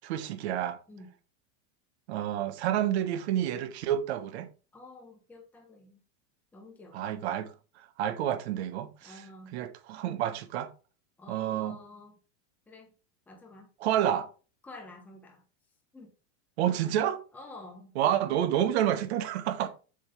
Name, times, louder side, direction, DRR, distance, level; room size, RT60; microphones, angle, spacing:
voice 1, 0.0-0.8 2.1-4.5 6.9-7.5 8.0-9.2 9.5-10.7 11.3-11.8 13.8-14.3 16.6-17.2 18.0-19.7, right 11 dB, 55° right, 1.3 m, -29 dB
voice 2, 4.7-6.0 6.5-7.0 9.0-9.5 11.2-12.1 12.7-12.9 13.3-13.7 14.6-15.4 15.9-16.1 16.7-16.9 17.3-17.9 19.6-19.7, left 2 dB, 5° left, 1.1 m, -49 dB
7.9 x 6.4 x 3.3 m
supercardioid pair, 175°, 38 cm